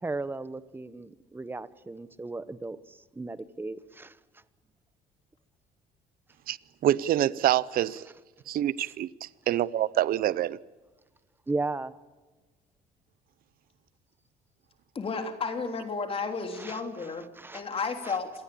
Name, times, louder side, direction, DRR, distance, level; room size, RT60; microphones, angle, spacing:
voice 1, 0.0-4.2 11.5-11.9 16.5-17.1 17.3-17.7 18.0-18.2, right 3 dB, 10° right, 1.1 m, -36 dB
voice 2, 6.8-8.1 8.5-10.6, right 12 dB, 60° right, 0.7 m, -26 dB
voice 3, 15.0-17.3 17.5-18.3, left 4 dB, 35° left, 3.5 m, -32 dB
26.5 x 18.5 x 8.6 m
cardioid pair, 110°, 17 cm